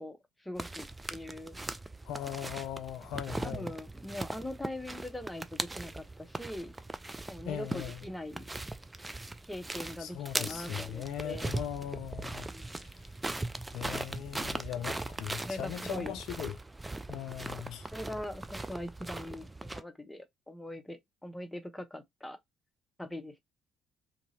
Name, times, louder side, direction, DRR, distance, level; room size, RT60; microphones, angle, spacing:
voice 1, 0.0-1.6 3.4-6.7 7.3-8.5 9.4-11.6 12.5-12.8 15.4-16.2 17.4-17.5 17.9-22.4 23.0-23.4, left 1 dB, 10° left, 0.8 m, -42 dB
sound 1, 0.6-19.8, right 2 dB, 15° right, 0.4 m, -40 dB
voice 2, 2.1-3.7 7.4-8.0 10.0-13.1 13.7-16.6 17.1-17.9, left 10 dB, 65° left, 0.3 m, -39 dB
2.8 x 2.7 x 2.7 m
figure-of-eight pair, 50°, 0 cm